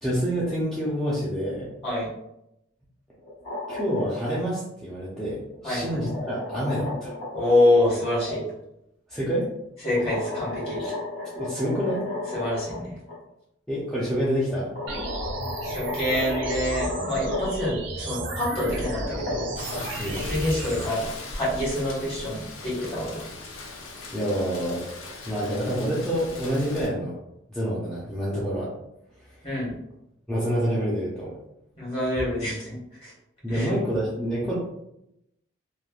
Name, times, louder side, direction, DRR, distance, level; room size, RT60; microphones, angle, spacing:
voice 1, 0.0-1.7 3.7-7.1 9.1-9.5 10.8-10.9 11.3-12.0 13.7-14.7 20.0-20.3 24.1-24.8 25.3-27.1 27.5-28.7 29.3-29.4 30.3-31.3 33.4-34.5, equal, ahead, -9 dB, 0.5 m, -27 dB
sound 1, 3.2-4.3 5.5-8.4 10.0-12.8 13.1-13.2 14.2-14.3 14.8-17.7 18.5-20.2, left 2 dB, 60° left, 1.4 m, -34 dB
voice 2, 5.6-6.0 7.3-8.4 9.8-10.8 12.3-13.0 15.6-19.5 20.2-23.2 29.4-29.7 31.8-33.1 33.5-33.7, left 1 dB, 30° left, -7 dB, 1.3 m, -26 dB
sound 2, 14.9-20.9, right 2 dB, 60° right, 0.4 m, -34 dB
Rain, 19.6-26.9, left 3 dB, 80° left, 0.5 m, -39 dB
3.1 x 2.1 x 2.3 m, 0.83 s
head